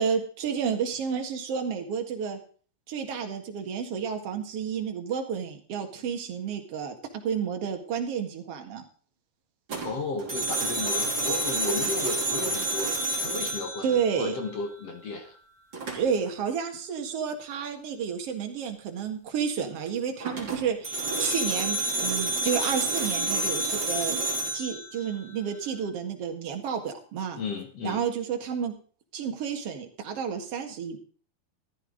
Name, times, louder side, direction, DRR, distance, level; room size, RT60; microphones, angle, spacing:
voice 1, 0.0-2.4 2.9-6.9 7.2-8.8 13.8-14.3 15.9-27.4 27.8-28.7 29.1-31.0, right 7 dB, 50° right, 4 dB, 2.3 m, -31 dB
sound 1, 9.7-14.7 15.7-16.3 20.2-25.7, right 2 dB, 30° right, 3.3 m, -29 dB
voice 2, 9.8-12.9 13.2-15.4 27.4-28.0, left 4 dB, 50° left, 4 dB, 2.1 m, -34 dB
14.0 x 13.0 x 3.9 m, 0.42 s
omnidirectional pair, 4.4 m